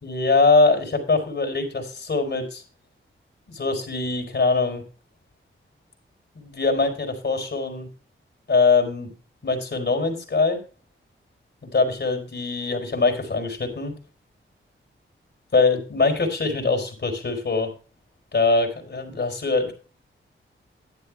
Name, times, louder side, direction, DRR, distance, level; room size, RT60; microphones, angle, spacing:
voice 1, 0.0-2.6 3.5-4.8 6.3-7.9 8.5-9.1 9.4-10.6 11.6-14.0 15.5-17.7 18.3-19.7, left 3 dB, 60° left, 1 dB, 4.2 m, -22 dB
12.0 x 10.5 x 3.4 m, 0.36 s
wide cardioid pair, 105°, 21 cm